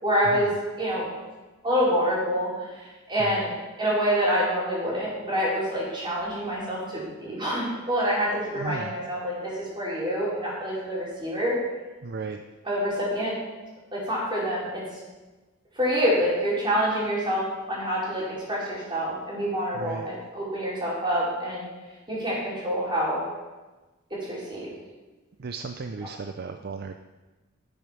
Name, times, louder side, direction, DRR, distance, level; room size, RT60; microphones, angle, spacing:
voice 1, 0.0-0.5 0.8-1.1 1.6-2.5 3.1-3.5 3.8-11.5 12.6-13.3 13.9-14.8 15.8-21.7 22.1-23.2 24.3-24.7, equal, 25° right, -7 dB, 4.8 m, -26 dB
voice 2, 8.6-8.9 12.0-12.4 19.7-20.1 25.4-27.0, right 4 dB, 50° right, 7 dB, 0.5 m, -35 dB
11.0 x 8.6 x 6.0 m, 1.2 s
head